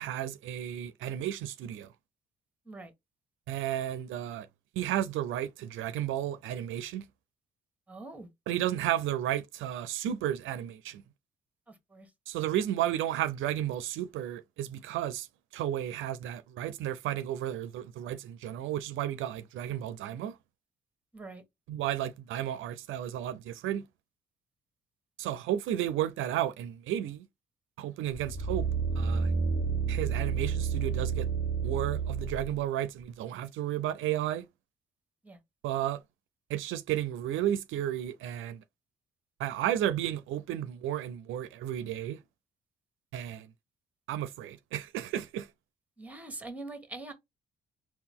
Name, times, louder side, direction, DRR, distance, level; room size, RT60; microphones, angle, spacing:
voice 1, 0.0-1.9 3.5-4.5 4.8-7.0 8.5-11.0 12.3-15.3 15.5-20.4 21.7-23.8 25.2-27.3 27.8-28.7 29.0-29.3 29.9-31.3 31.6-34.5 35.6-36.0 36.5-38.6 39.4-42.2 43.1-43.5 44.1-45.5, right 11 dB, 80° right, 0.4 m, -33 dB
voice 2, 7.9-8.3 11.7-12.1 21.1-21.4 35.2-35.4 46.0-47.1, right 2 dB, 5° right, 1.2 m, -43 dB
sound 1, 28.1-32.5 33.0-33.1, right 5 dB, 55° left, 1.5 m, -30 dB
3.9 x 2.4 x 3.5 m
cardioid pair, 90°, 20 cm